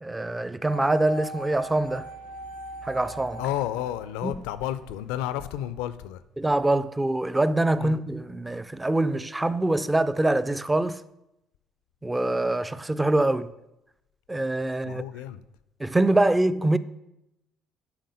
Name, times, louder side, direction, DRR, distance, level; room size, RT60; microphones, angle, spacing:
voice 1, 0.0-2.1 2.8-3.4 4.2-4.4 6.4-11.0 12.0-13.5 14.3-15.0 15.8-16.8, right 2 dB, 15° right, 0.4 m, -24 dB
sound 1, 0.7-4.8 5.0-5.1, right 1 dB, 85° right, 1.3 m, -41 dB
voice 2, 3.4-6.2 7.8-8.0 14.8-15.4, left 12 dB, 70° left, 0.4 m, -31 dB
10.5 x 3.9 x 4.9 m
hypercardioid pair, 50°, 0 cm